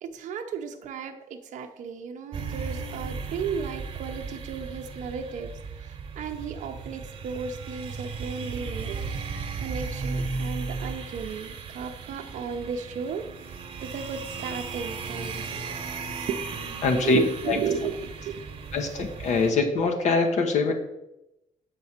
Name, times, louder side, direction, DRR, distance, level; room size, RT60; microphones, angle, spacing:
voice 1, 0.0-5.5 5.8-9.1 9.6-13.2 13.8-15.6 16.3-18.4 19.0-19.1, right 6 dB, 65° right, 4 dB, 0.6 m, -34 dB
sound 1, 2.3-19.5, right 4 dB, 45° right, 1.0 m, -36 dB
voice 2, 16.8-17.2 17.5-17.6 18.7-20.7, left 4 dB, 60° left, 4 dB, 0.9 m, -23 dB
7.4 x 4.8 x 4.3 m, 0.88 s
cardioid pair, 115°, 14 cm